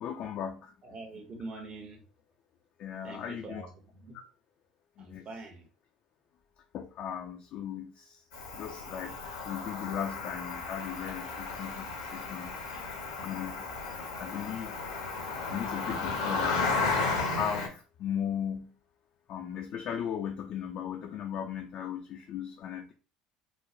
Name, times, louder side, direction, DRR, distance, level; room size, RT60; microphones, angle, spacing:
voice 1, 0.0-0.7 2.8-3.6 5.0-5.3 6.7-8.1 8.5-11.9 12.1-12.5 13.2-13.5 14.2-14.8 15.5-16.8 17.4-18.7 19.3-22.9, left 9 dB, 50° left, 3 dB, 0.3 m, -37 dB
voice 2, 0.8-2.0 3.0-4.2 5.0-5.7 11.3-11.4 12.7-13.0, right 3 dB, 35° right, 3 dB, 0.8 m, -45 dB
Cricket, 8.3-17.7, left 3 dB, 75° left, 0.7 m, -34 dB
3.0 x 2.0 x 2.4 m, 0.36 s
figure-of-eight pair, 65°, 3 cm